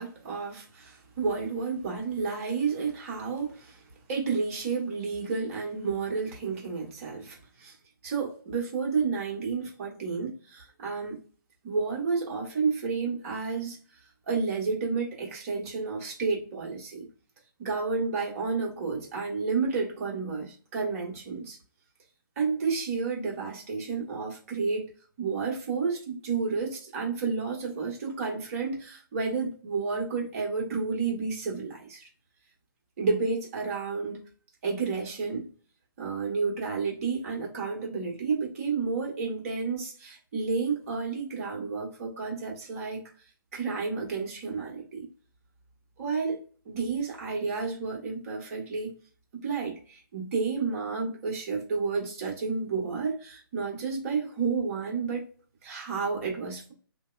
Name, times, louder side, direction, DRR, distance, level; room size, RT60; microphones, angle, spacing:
voice 1, 0.0-3.8 4.1-7.7 8.0-11.2 11.6-13.8 14.3-17.1 17.6-21.6 22.4-24.9 25.2-32.1 33.0-34.2 34.6-35.5 36.0-43.0 43.5-45.1 46.0-46.4 46.6-48.9 49.4-55.3 55.6-56.7, right 4 dB, 40° right, 1.3 m, -31 dB
2.7 x 2.1 x 2.4 m
figure-of-eight pair, 145°, 12 cm